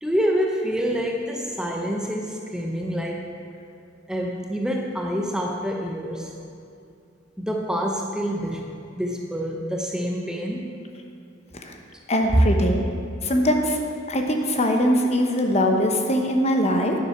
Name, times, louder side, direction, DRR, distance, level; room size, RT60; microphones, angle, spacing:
voice 1, 0.0-3.3 4.1-6.3 7.4-8.6 9.0-10.7 12.3-12.4, equal, 5° right, 0 dB, 0.7 m, -26 dB
voice 2, 12.1-12.8 13.2-13.8 14.1-16.9, equal, 35° left, 3 dB, 1.0 m, -21 dB
10.0 x 7.3 x 5.9 m, 2.4 s
head